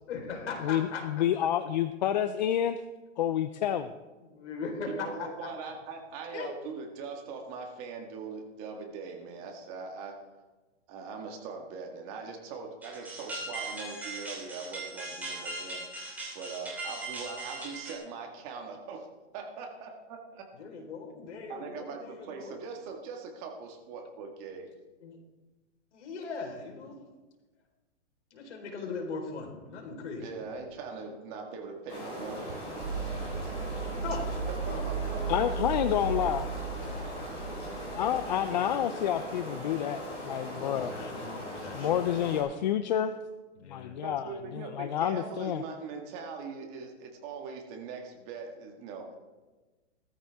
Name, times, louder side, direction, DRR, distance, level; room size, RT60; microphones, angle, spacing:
voice 1, 0.1-1.0 4.2-5.5 6.3-6.6 20.6-22.6 25.0-25.2 25.9-27.0 28.3-30.3 33.8-34.3 34.7-35.6 40.5-42.2 43.6-44.0, left 4 dB, 70° left, 2 dB, 4.4 m, -39 dB
voice 2, 0.6-2.8 3.2-3.9 35.3-36.5 37.9-40.9 41.7-43.1 43.7-44.3 44.5-45.6, left 10 dB, 40° left, 11 dB, 0.5 m, -29 dB
voice 3, 4.8-10.2 10.9-19.1 19.3-20.4 21.5-24.7 30.1-32.5 34.1-34.2 34.6-35.7 44.0-49.1, right 5 dB, 30° right, 3 dB, 1.8 m, -41 dB
sound 1, 12.8-17.9, right 2 dB, 5° right, 3.0 m, -39 dB
sound 2, 30.6-38.7, right 5 dB, 80° right, 1.8 m, -36 dB
sound 3, 31.9-42.4, equal, 15° left, 5.3 m, -40 dB
18.0 x 13.5 x 3.6 m, 1.2 s
hypercardioid pair, 165°, 36 cm